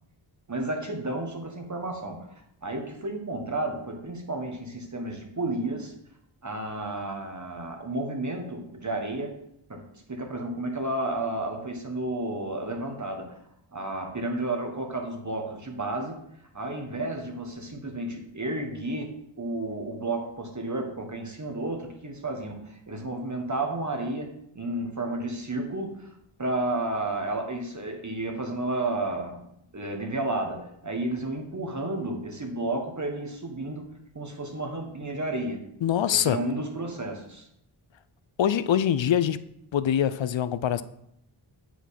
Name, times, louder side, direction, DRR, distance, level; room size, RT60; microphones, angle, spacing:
voice 1, 0.5-2.3 2.6-5.9 6.4-9.3 9.7-9.8 10.1-13.4 13.7-16.2 16.5-26.1 26.4-29.4 29.7-33.9 34.1-35.6 36.1-37.5, right 2 dB, 35° right, 3 dB, 1.5 m, -32 dB
voice 2, 35.8-36.4 38.4-39.4 39.7-40.8, left 9 dB, 65° left, 14 dB, 0.6 m, -24 dB
8.0 x 4.6 x 4.2 m, 0.77 s
wide cardioid pair, 55°, 49 cm